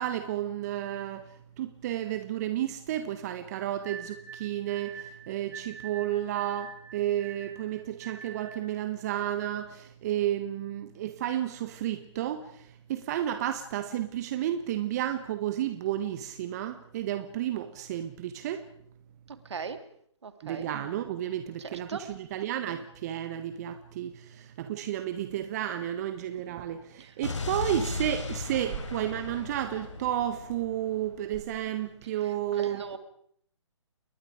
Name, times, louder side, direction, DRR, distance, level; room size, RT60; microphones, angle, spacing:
voice 1, 0.0-18.7 20.4-32.9, right 11 dB, 35° right, 1.5 m, -32 dB
sound 1, 3.8-8.7, right 7 dB, 10° right, 1.8 m, -45 dB
voice 2, 19.3-19.8 20.2-20.7 21.6-22.0 27.0-27.1 32.6-33.0, right 5 dB, 65° right, 3.1 m, -39 dB
Explosion, 27.2-31.3, left 3 dB, 75° left, 5.2 m, -37 dB
29.5 x 22.0 x 5.1 m
figure-of-eight pair, 140°, 16 cm